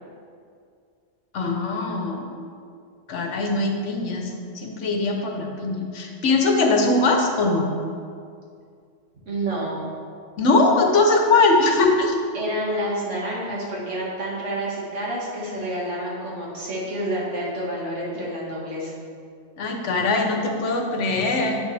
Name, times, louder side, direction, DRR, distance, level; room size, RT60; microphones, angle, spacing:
voice 1, 1.3-2.3 3.1-7.7 10.4-12.1 19.6-21.6, left 3 dB, 70° left, 2 dB, 1.2 m, -21 dB
voice 2, 9.3-9.8 12.3-19.0, right 1 dB, 70° right, -5 dB, 2.0 m, -29 dB
8.2 x 6.4 x 3.3 m, 2.3 s
omnidirectional pair, 1.3 m